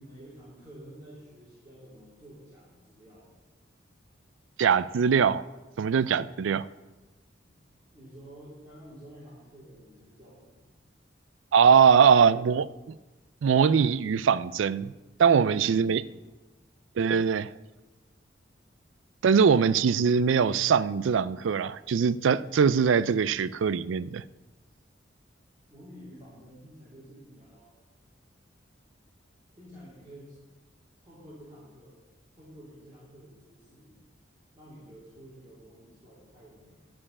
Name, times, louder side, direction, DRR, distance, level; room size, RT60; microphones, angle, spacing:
voice 1, 0.0-3.3 7.5-10.7 15.6-15.9 16.2-16.3 19.5-19.8 25.7-27.7 29.5-30.3 31.0-32.0 32.3-34.0 34.5-36.9, equal, 20° right, -11 dB, 3.3 m, -50 dB
voice 2, 4.6-5.4 5.8-6.6 11.5-12.7 13.4-14.9 15.2-16.0 17.0-17.5 19.2-24.2, right 6 dB, 80° right, 17 dB, 0.4 m, -22 dB
11.0 x 5.0 x 8.4 m, 1.1 s
head